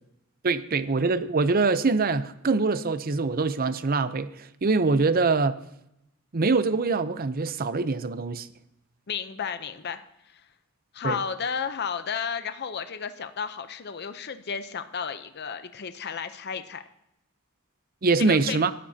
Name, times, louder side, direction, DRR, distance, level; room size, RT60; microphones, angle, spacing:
voice 1, 0.4-4.3 4.6-5.6 6.3-8.5 11.0-11.2 18.0-18.7, right 3 dB, 45° right, 13 dB, 0.6 m, -24 dB
voice 2, 9.1-10.0 10.3-10.4 10.9-16.8 18.2-18.6, left 6 dB, 50° left, 10 dB, 0.7 m, -33 dB
20.5 x 13.0 x 2.8 m, 0.82 s
head